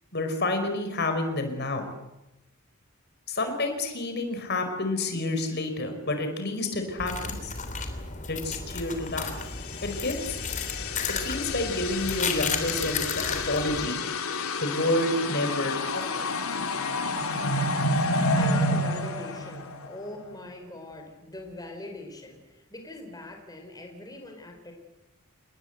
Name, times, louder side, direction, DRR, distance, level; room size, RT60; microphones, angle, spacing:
voice 1, 0.1-1.8 3.3-7.5 8.3-9.3 9.8-10.4 11.2-14.0 14.6-16.3, left 2 dB, 50° left, 6 dB, 4.9 m, -29 dB
sound 1, 7.0-13.9, left 5 dB, 35° left, 3.4 m, -33 dB
sound 2, 9.5-20.1, left 2 dB, 90° left, 2.7 m, -29 dB
voice 2, 18.4-24.7, left 1 dB, 20° left, 3 dB, 4.7 m, -42 dB
28.0 x 20.5 x 8.1 m, 0.97 s
head